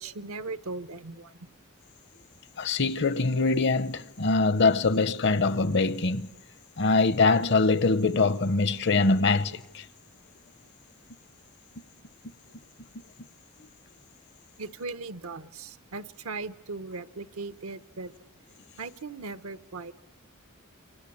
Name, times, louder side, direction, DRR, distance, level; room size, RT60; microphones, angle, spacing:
voice 1, 0.0-1.5 14.6-18.1 18.8-19.9, right 3 dB, 80° right, 0.9 m, -38 dB
voice 2, 2.6-6.3 6.8-9.8, left 3 dB, 55° left, 0.8 m, -23 dB
27.5 x 25.0 x 8.5 m
head